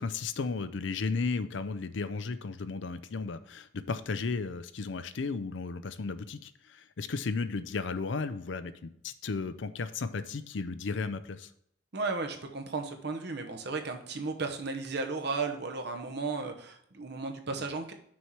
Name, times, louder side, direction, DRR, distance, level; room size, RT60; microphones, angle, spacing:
voice 1, 0.0-11.5, left 4 dB, 70° left, 12 dB, 0.5 m, -34 dB
voice 2, 11.9-17.9, right 3 dB, 55° right, 5 dB, 1.0 m, -34 dB
6.2 x 4.8 x 5.7 m, 0.71 s
head